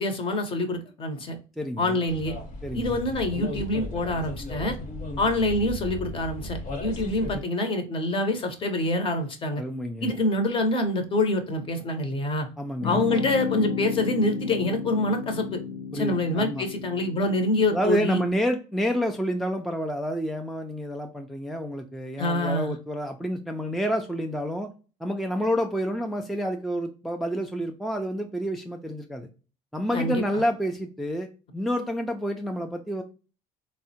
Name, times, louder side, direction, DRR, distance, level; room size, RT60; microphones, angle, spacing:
voice 1, 0.0-1.4 1.8-2.4 2.7-4.8 5.2-9.6 10.0-12.5 12.8-15.6 15.9-18.2 22.2-22.7 29.9-30.4, left 1 dB, 35° left, 6 dB, 0.8 m, -26 dB
voice 2, 1.6-2.0 2.6-3.0 9.6-10.1 12.6-13.0 15.9-16.7 17.7-24.7 25.0-29.3 29.7-33.0, equal, ahead, 4 dB, 0.3 m, -29 dB
sound 1, 2.1-7.4, left 2 dB, 60° left, 1.2 m, -36 dB
sound 2, 12.8-18.3, left 6 dB, 80° left, 0.7 m, -34 dB
3.4 x 2.1 x 2.7 m, 0.35 s
supercardioid pair, 95°, 15 cm